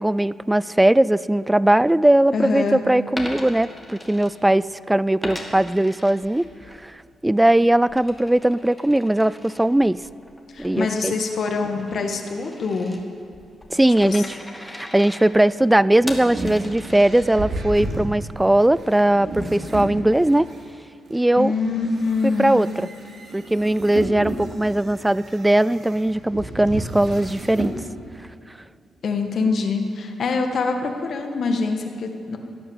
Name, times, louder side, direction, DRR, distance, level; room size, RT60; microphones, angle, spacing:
voice 1, 0.0-6.5 6.8-6.9 7.2-10.0 10.6-11.1 13.7-20.5 21.1-21.5 22.2-22.9 23.3-27.7, right 1 dB, 10° right, 18 dB, 0.3 m, -19 dB
voice 2, 2.3-2.8 10.5-13.0 14.0-14.2 21.4-22.6 29.0-32.4, left 4 dB, 60° left, 4 dB, 1.7 m, -24 dB
Coin (dropping), 3.2-4.8 5.2-6.8 7.2-17.6, left 1 dB, 10° left, 1.8 m, -39 dB
sound 1, 15.5-20.6 21.1-27.8, right 2 dB, 60° right, 3.0 m, -33 dB
16.5 x 10.0 x 7.3 m, 2.4 s
cardioid pair, 100°, 0 cm